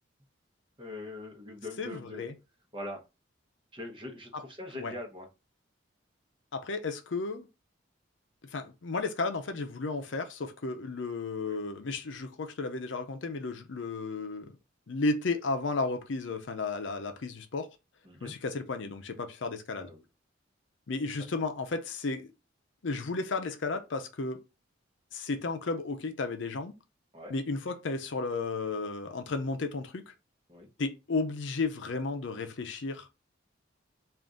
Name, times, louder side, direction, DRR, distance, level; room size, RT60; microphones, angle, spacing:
voice 1, 0.8-2.2 2.7-3.0 3.7-5.3 11.4-11.6 18.0-18.4 19.7-20.0 27.1-27.3 30.5-30.7, left 1 dB, 25° right, 0.9 m, -42 dB
voice 2, 1.8-2.3 4.3-4.4 4.7-4.9 6.5-7.5 8.5-14.5 14.9-17.7 18.2-19.9 20.9-22.3 22.8-24.4 25.1-26.7 27.3-30.1 30.8-33.1, left 3 dB, 70° left, 0.6 m, -33 dB
3.7 x 2.5 x 3.7 m
head